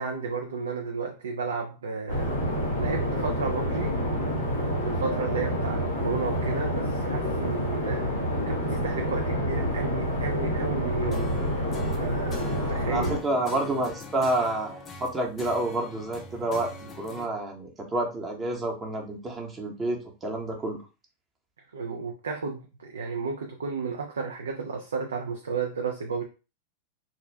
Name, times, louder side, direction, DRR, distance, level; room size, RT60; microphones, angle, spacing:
voice 1, 0.0-2.4 2.7-4.0 4.8-8.1 8.5-11.4 11.8-13.1 21.7-26.2, right 5 dB, 65° right, 0.4 m, -33 dB
sound 1, 2.1-13.2, equal, 85° right, 1.4 m, -28 dB
sound 2, 11.1-17.3, left 4 dB, 25° left, 0.5 m, -43 dB
voice 2, 12.9-20.8, right 2 dB, 20° right, 0.8 m, -29 dB
2.5 x 2.2 x 3.3 m
figure-of-eight pair, 90°, 0 cm